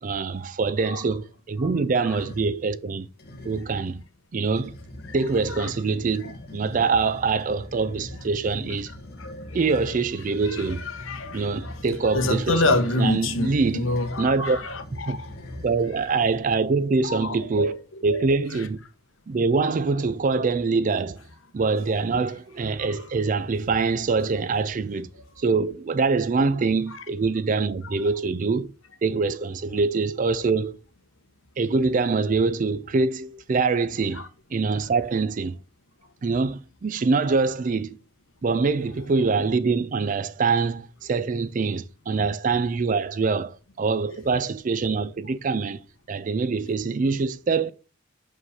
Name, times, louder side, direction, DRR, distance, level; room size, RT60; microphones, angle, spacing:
voice 1, 0.0-3.1 3.4-4.0 4.3-4.7 5.1-8.9 9.5-10.8 11.3-13.9 14.2-14.6 14.9-15.2 15.6-18.8 19.3-21.2 21.5-25.1 25.4-28.7 29.0-30.8 31.6-34.2 34.5-35.6 36.2-38.0 38.4-45.8 46.1-47.7, right 4 dB, 40° right, 0.4 m, -24 dB
sound 1, 2.1-2.6 3.2-3.8 4.4-16.4, left 1 dB, 50° left, 1.6 m, -41 dB
voice 2, 9.2-9.6 10.5-11.8 12.1-15.3 17.0-17.7 18.1-18.2 42.1-42.2, left 2 dB, 80° left, 1.0 m, -27 dB
5.6 x 5.2 x 4.8 m
head